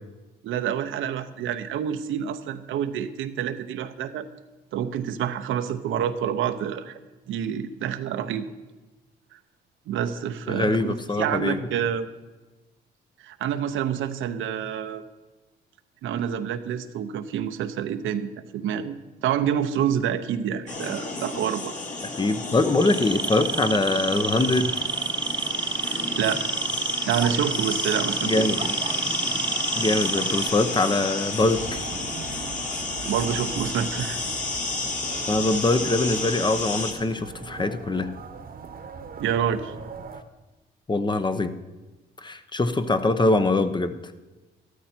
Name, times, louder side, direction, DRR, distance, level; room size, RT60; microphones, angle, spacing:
voice 1, 0.4-4.3 4.7-7.0 7.3-8.4 9.3-9.4 9.9-12.1 13.2-15.0 16.0-19.0 19.2-21.7 25.8-26.4 27.0-28.5 33.0-34.3 39.2-39.7, right 9 dB, 80° right, 9 dB, 0.9 m, -28 dB
voice 2, 10.5-11.6 22.0-24.7 28.2-28.7 29.7-31.8 35.3-38.1 40.9-41.5 42.2-44.0, left 2 dB, 25° left, 10 dB, 0.8 m, -23 dB
sound 1, 20.7-36.9, left 3 dB, 40° left, 2.4 m, -32 dB
sound 2, 22.7-30.5, right 4 dB, 20° right, 0.6 m, -29 dB
sound 3, 31.4-40.2, right 5 dB, 45° right, 1.1 m, -40 dB
13.0 x 13.0 x 4.5 m, 1.1 s
cardioid pair, 90°, 20 cm